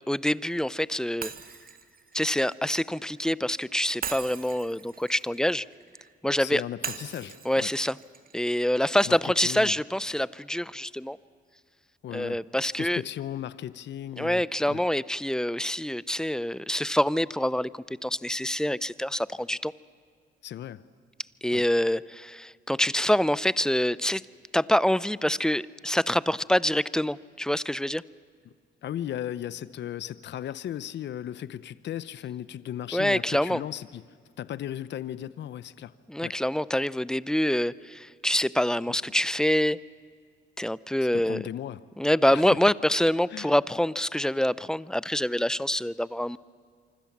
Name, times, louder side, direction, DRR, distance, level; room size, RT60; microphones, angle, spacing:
voice 1, 0.1-1.3 2.1-5.6 6.2-6.6 7.4-8.0 8.3-11.2 12.1-13.0 14.2-19.7 21.4-24.2 24.5-28.0 32.9-33.6 36.1-39.8 40.6-41.4 42.0-46.4, left 1 dB, 5° left, 19 dB, 0.5 m, -26 dB
Shatter, 1.2-3.3 4.0-6.1 6.8-8.9, right 6 dB, 45° right, 1.6 m, -40 dB
voice 2, 6.4-7.7 9.1-9.8 12.0-12.4 12.8-14.8 20.4-20.8 21.5-21.6 28.4-28.5 28.8-34.0 34.4-35.9 36.2-36.3 41.1-41.8 42.3-42.6 43.3-43.5, left 11 dB, 65° left, 16 dB, 0.8 m, -36 dB
25.5 x 25.0 x 7.4 m, 2.1 s
cardioid pair, 90°, 20 cm